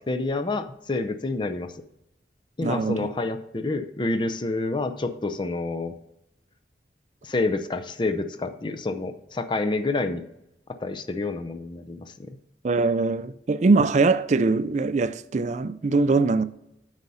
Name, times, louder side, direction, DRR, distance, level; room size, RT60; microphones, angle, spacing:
voice 1, 0.1-1.7 2.6-5.9 7.2-10.2 10.8-12.3, left 2 dB, 25° left, 0.6 m, -28 dB
voice 2, 2.6-3.1 12.6-16.4, right 3 dB, 40° right, 0.4 m, -22 dB
8.2 x 4.9 x 5.5 m
head